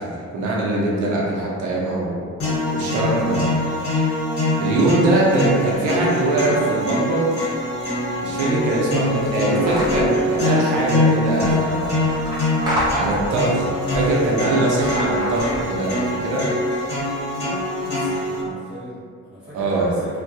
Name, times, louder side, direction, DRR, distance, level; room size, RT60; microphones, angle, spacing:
voice 1, 0.0-2.2 2.7-3.4 4.6-7.3 8.2-12.1 12.9-16.5 19.5-19.9, right 2 dB, 80° right, -4 dB, 0.7 m, -22 dB
sound 1, 2.4-18.4, left 1 dB, 50° left, 1.2 m, -23 dB
sound 2, 9.6-10.1 11.2-13.4 13.9-15.8, equal, 15° right, 0.6 m, -29 dB
voice 2, 17.9-20.2, equal, 40° right, -13 dB, 1.1 m, -37 dB
2.2 x 2.2 x 2.7 m, 2.1 s
cardioid pair, 90°, 30 cm